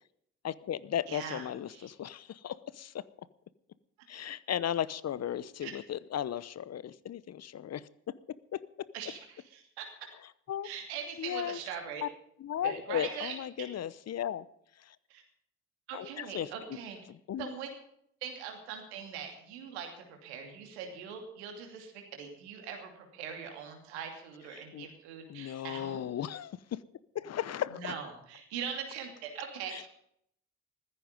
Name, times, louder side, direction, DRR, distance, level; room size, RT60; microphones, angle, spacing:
voice 1, 0.4-3.0 4.1-7.8 8.5-8.6 10.5-10.7 11.2-11.6 12.0-12.1 12.4-14.5 14.9-15.0 15.9-16.5 17.1-17.5 24.5-24.9 25.3-26.8 27.1-27.9 29.7-29.9, left 10 dB, 50° left, 19 dB, 0.9 m, -36 dB
voice 2, 1.1-1.9 5.6-5.7 8.9-9.8 10.6-12.0 12.6-13.7 15.1-15.2 15.9-17.0 17.4-17.7 18.2-26.0 27.7-29.9, right 7 dB, 85° right, 3 dB, 2.8 m, -41 dB
15.0 x 14.0 x 5.3 m, 0.71 s
hypercardioid pair, 40°, 32 cm